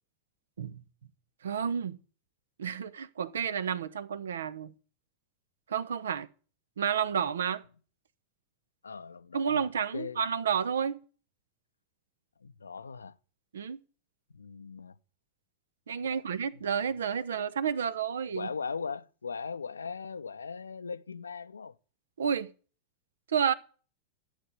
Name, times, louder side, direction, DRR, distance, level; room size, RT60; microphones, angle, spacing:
voice 1, 1.4-2.0 2.6-4.7 5.7-6.3 6.8-7.6 9.3-11.0 13.5-13.8 15.9-18.5 22.2-22.5 23.3-23.5, right 7 dB, 65° right, 1.1 m, -30 dB
voice 2, 8.8-9.7 9.9-10.2 12.4-13.2 14.3-15.0 16.0-16.6 18.3-21.7, left 5 dB, 75° left, 0.7 m, -39 dB
13.5 x 8.3 x 9.7 m
figure-of-eight pair, 90°, 0 cm